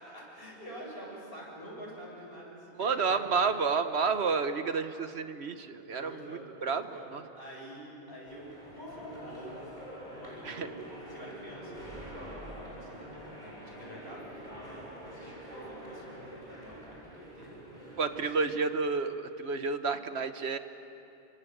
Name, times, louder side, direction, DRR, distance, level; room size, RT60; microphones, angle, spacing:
voice 1, 0.0-3.2 5.8-9.6 10.1-18.4, right 1 dB, 60° left, -3 dB, 7.8 m, -47 dB
voice 2, 2.8-7.2 10.4-10.7 18.0-20.6, right 5 dB, 75° right, 9 dB, 1.4 m, -30 dB
sound 1, 8.2-18.4, equal, 40° right, 7.2 m, -46 dB
28.5 x 26.0 x 8.0 m, 2.9 s
omnidirectional pair, 1.1 m